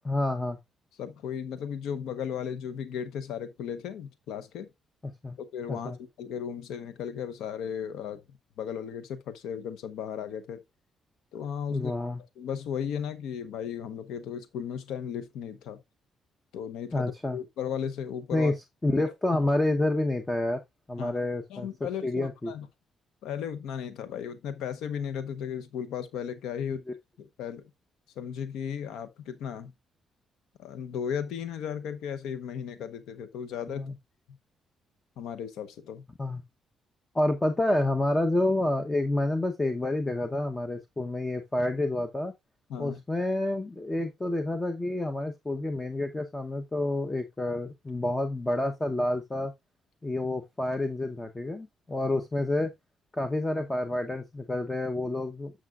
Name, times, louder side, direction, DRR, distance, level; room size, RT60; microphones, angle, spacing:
voice 1, 0.0-0.6 5.0-5.4 5.7-6.0 11.7-12.2 16.9-17.4 18.3-18.5 18.8-20.6 20.9-21.7 22.0-22.5 26.6-26.8 33.7-33.9 36.2-36.4 37.1-42.3 42.8-49.5 50.0-52.7 53.1-55.5, left 1 dB, 15° left, 0.9 m, -28 dB
voice 2, 1.0-4.7 5.4-8.2 8.6-10.6 11.3-11.9 12.4-15.8 16.5-18.5 18.9-19.0 19.3-19.4 21.0-21.2 21.5-22.7 23.2-26.8 27.2-27.6 28.2-29.7 30.6-33.9 35.2-36.0 42.7-43.0, left 8 dB, 85° left, 0.8 m, -35 dB
10.5 x 6.2 x 2.4 m
cardioid pair, 90°, 0 cm